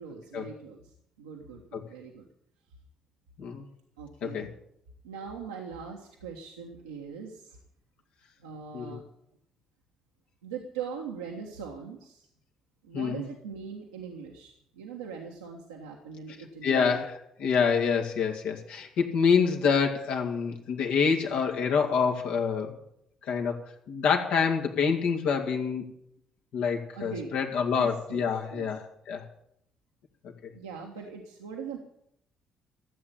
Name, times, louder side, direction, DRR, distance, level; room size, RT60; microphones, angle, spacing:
voice 1, 0.0-2.3 4.0-4.5 5.0-7.6 8.4-9.0 10.4-12.3 12.8-17.0 26.9-27.3 27.7-28.7 30.5-31.8, right 6 dB, 80° right, -1 dB, 1.5 m, -41 dB
voice 2, 16.6-22.7 23.3-23.6 23.9-25.8 26.5-29.2, left 6 dB, 65° left, 3 dB, 2.3 m, -26 dB
15.5 x 8.7 x 10.0 m, 0.73 s
figure-of-eight pair, 40°, 2 cm